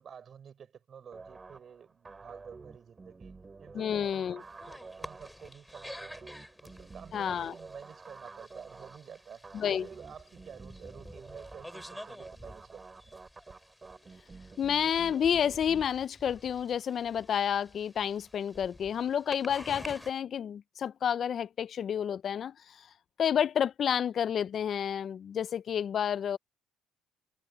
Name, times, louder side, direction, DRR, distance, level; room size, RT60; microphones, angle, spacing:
voice 1, 0.0-13.1, right 7 dB, 50° right, 6.8 m, -51 dB
sound 1, 1.1-15.9, right 4 dB, 25° right, 6.7 m, -50 dB
voice 2, 3.7-4.4 7.1-7.5 9.5-9.9 14.6-22.9 23.2-26.4, left 8 dB, 50° left, 0.5 m, -30 dB
sound 2, 4.4-20.1, left 1 dB, 5° left, 5.2 m, -50 dB
supercardioid pair, 80°, 0 cm